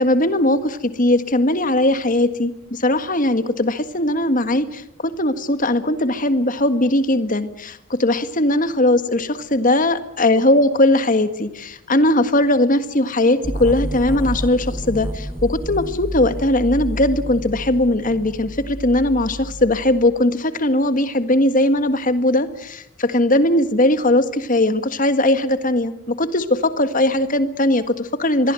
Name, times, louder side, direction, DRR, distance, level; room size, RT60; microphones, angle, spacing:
voice 1, 0.0-28.5, left 1 dB, 40° left, 11 dB, 1.7 m, -19 dB
sound 1, 13.4-20.2, equal, 15° right, 1.2 m, -30 dB
26.0 x 22.0 x 7.7 m, 0.78 s
head